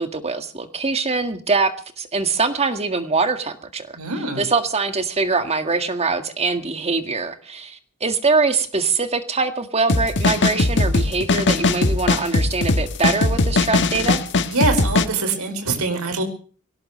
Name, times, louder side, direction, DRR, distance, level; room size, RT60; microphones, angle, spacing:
voice 1, 0.0-4.0 4.4-14.2, right 4 dB, 30° right, 7 dB, 1.9 m, -23 dB
voice 2, 4.0-4.4 14.5-16.2, right 3 dB, 75° right, 6 dB, 5.2 m, -23 dB
sound 1, 9.9-15.1, left 3 dB, 55° left, 1.4 m, -19 dB
22.5 x 18.5 x 3.3 m, 0.43 s
head